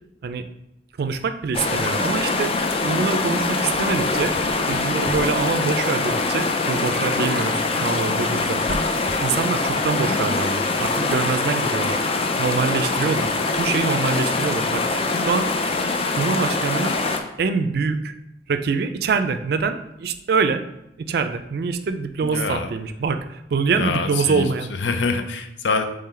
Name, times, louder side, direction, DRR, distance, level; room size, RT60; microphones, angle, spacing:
voice 1, 1.0-2.5 2.8-4.3 4.7-8.8 9.2-12.0 12.4-14.8 15.3-15.4 16.2-17.0 17.4-18.1 18.5-20.6 21.0-23.2 23.5-24.7, right 5 dB, 60° right, 9 dB, 0.4 m, -24 dB
sound 1, 1.5-17.2, left 3 dB, 35° left, 0.4 m, -23 dB
Wind instrument woodwind instrument, 3.9-9.7, equal, 50° left, 0.7 m, -39 dB
voice 2, 22.2-22.7 23.7-24.4 24.8-25.9, left 4 dB, 85° left, 8 dB, 0.5 m, -25 dB
3.8 x 3.2 x 4.3 m, 0.84 s
head